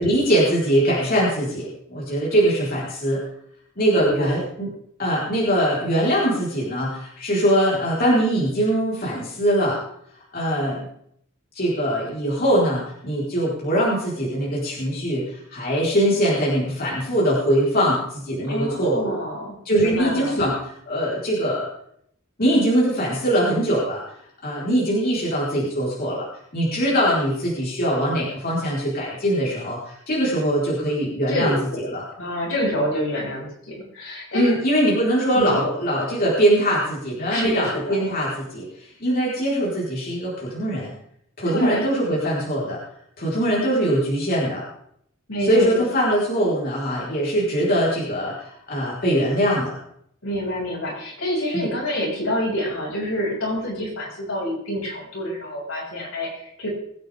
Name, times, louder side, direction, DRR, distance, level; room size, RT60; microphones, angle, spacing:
voice 1, 0.0-3.2 3.8-4.7 5.0-9.8 10.3-10.9 11.5-19.2 19.6-21.7 22.4-24.0 24.4-26.3 26.5-32.0 34.3-40.9 41.4-42.8 43.2-44.6 45.4-49.8 51.5-51.7, equal, 45° left, -6 dB, 4.2 m, -22 dB
voice 2, 3.9-4.4 18.5-20.4 31.3-31.8 32.2-34.5 35.3-35.6 37.3-38.0 41.4-41.8 45.3-45.8 50.2-56.7, equal, 75° left, -4 dB, 6.2 m, -27 dB
22.5 x 9.0 x 3.6 m, 0.70 s
head